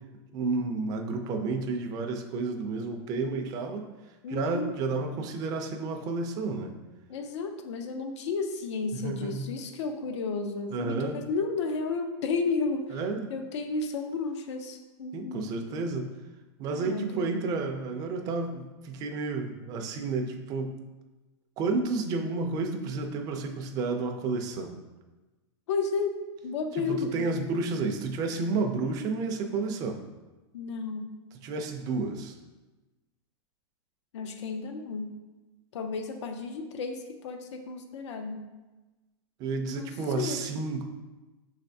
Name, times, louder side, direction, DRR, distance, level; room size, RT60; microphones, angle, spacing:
voice 1, 0.3-3.9 4.3-6.7 9.0-9.5 10.7-11.2 12.9-13.3 15.1-16.1 16.6-20.8 21.6-24.8 26.8-30.0 31.4-32.4 39.4-40.8, right 3 dB, 25° right, 4 dB, 0.4 m, -31 dB
voice 2, 4.2-4.7 7.1-13.0 13.3-15.5 16.7-17.5 25.7-27.3 30.5-31.1 34.1-35.1 35.7-38.5 39.7-39.9 40.2-40.4, left 4 dB, 80° left, 6 dB, 0.5 m, -32 dB
6.2 x 3.3 x 2.6 m, 1.2 s
supercardioid pair, 160°, 15 cm